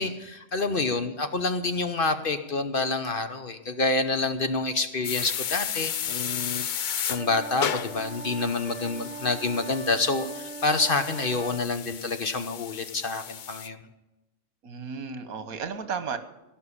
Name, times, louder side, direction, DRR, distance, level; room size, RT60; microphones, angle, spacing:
voice 1, 0.0-13.8, left 3 dB, 45° left, 8 dB, 0.9 m, -28 dB
sound 1, 5.0-13.7, left 9 dB, 70° left, 0.4 m, -34 dB
sound 2, 7.1-11.6, right 4 dB, 10° right, 2.4 m, -40 dB
voice 2, 14.6-16.2, right 6 dB, 80° right, 11 dB, 1.6 m, -34 dB
17.0 x 5.8 x 9.9 m, 0.99 s
omnidirectional pair, 1.4 m